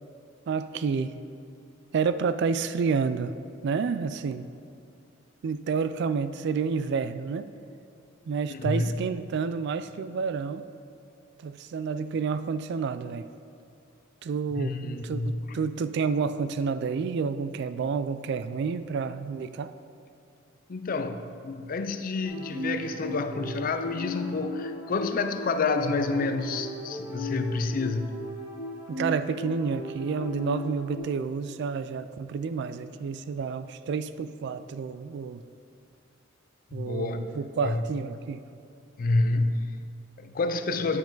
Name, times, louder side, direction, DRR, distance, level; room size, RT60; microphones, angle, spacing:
voice 1, 0.5-1.2 1.9-3.3 3.6-4.5 5.4-7.5 8.3-10.7 11.4-13.3 14.2-19.7 28.9-35.4 36.7-38.4, right 5 dB, 60° right, 13 dB, 0.3 m, -29 dB
voice 2, 8.5-9.0 14.5-15.6 20.7-28.1 36.7-37.8 39.0-41.0, left 3 dB, 45° left, 9 dB, 0.4 m, -29 dB
sound 1, 22.2-31.0, left 1 dB, 25° right, 1.8 m, -36 dB
9.5 x 7.1 x 3.9 m, 2.5 s
head